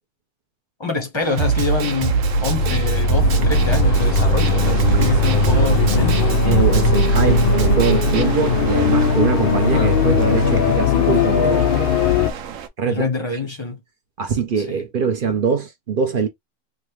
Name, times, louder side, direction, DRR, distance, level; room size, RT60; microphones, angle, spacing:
voice 1, 0.8-6.4 9.7-10.0 12.9-13.8 14.6-14.8, left 3 dB, 25° left, 0.7 m, -26 dB
sound 1, 1.2-12.7, right 8 dB, 70° right, 1.0 m, -34 dB
Snare drum, 1.4-8.2, right 4 dB, 90° right, 1.2 m, -22 dB
sound 2, 2.1-12.3, left 3 dB, 85° left, 0.4 m, -18 dB
voice 2, 4.8-5.1 6.4-12.0 12.8-13.1 14.2-16.3, right 6 dB, 55° right, 0.6 m, -23 dB
3.3 x 2.3 x 3.1 m
omnidirectional pair, 1.5 m